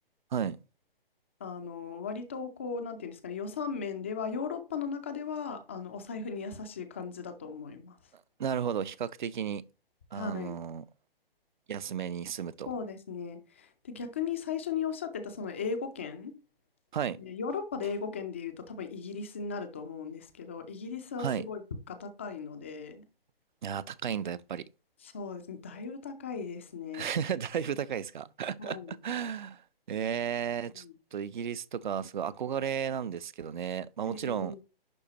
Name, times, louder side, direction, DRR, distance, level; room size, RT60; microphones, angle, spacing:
voice 1, 1.4-7.9 10.1-10.6 12.7-16.3 17.2-21.6 21.9-23.0 25.0-27.1 28.6-29.0 30.7-30.9 34.1-34.6, left 5 dB, 15° left, 0.4 m, -37 dB
voice 2, 8.4-9.7 10.1-10.8 11.7-12.7 16.9-17.2 21.2-21.5 23.6-24.6 26.9-29.6 29.9-30.8 31.1-34.6, right 8 dB, 55° right, 0.5 m, -33 dB
10.5 x 3.9 x 2.8 m
figure-of-eight pair, 135°, 30 cm